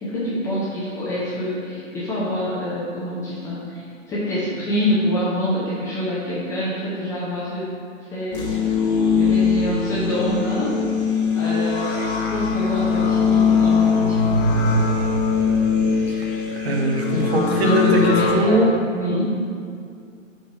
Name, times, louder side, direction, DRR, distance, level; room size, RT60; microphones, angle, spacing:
voice 1, 0.0-7.7 8.1-8.8 9.2-10.7 11.3-12.0 12.3-14.4 17.5-19.3, left 1 dB, 10° left, -9 dB, 0.7 m, -26 dB
sound 1, 8.3-18.3, left 5 dB, 45° left, 1.0 m, -21 dB
voice 2, 16.6-18.7 19.1-19.2, equal, 55° right, 1 dB, 1.2 m, -20 dB
8.4 x 4.1 x 4.7 m, 2.3 s
figure-of-eight pair, 140°, 39 cm